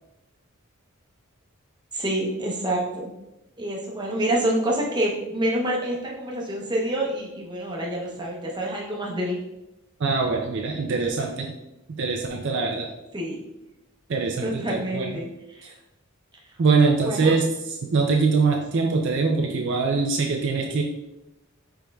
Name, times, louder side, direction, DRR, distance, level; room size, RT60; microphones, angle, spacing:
voice 1, 1.9-3.1 3.6-9.4 13.1-13.4 14.4-15.7 17.0-17.3, right 1 dB, 20° right, -3 dB, 0.8 m, -27 dB
voice 2, 10.0-11.5 12.0-12.9 14.1-15.1 16.6-20.8, right 4 dB, 55° right, 1 dB, 0.4 m, -23 dB
5.1 x 4.5 x 2.3 m, 0.93 s
head